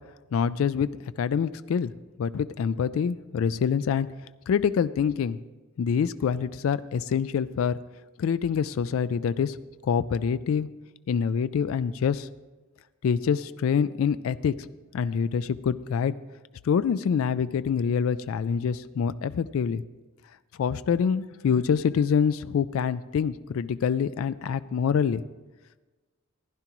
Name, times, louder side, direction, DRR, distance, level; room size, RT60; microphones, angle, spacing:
voice 1, 0.3-0.9 1.2-1.9 2.2-4.1 4.5-5.4 5.8-7.8 8.2-9.6 9.8-10.7 11.1-12.3 13.0-14.5 14.9-16.1 16.6-19.8 20.6-25.2, left 7 dB, 70° left, 14 dB, 0.3 m, -25 dB
15.5 x 10.5 x 3.0 m, 1.2 s
head